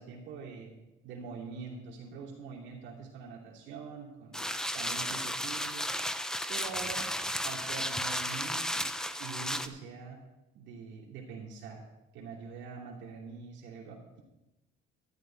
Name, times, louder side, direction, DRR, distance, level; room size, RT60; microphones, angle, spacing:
voice 1, 0.0-4.4 4.7-5.9 6.5-7.1 7.4-8.9 9.2-10.2 10.5-11.8 12.1-14.2, right 5 dB, 60° right, -3 dB, 2.6 m, -44 dB
sound 1, 4.3-9.7, equal, 5° left, 0.4 m, -34 dB
12.5 x 10.5 x 4.4 m, 1.0 s
cardioid pair, 160°, 21 cm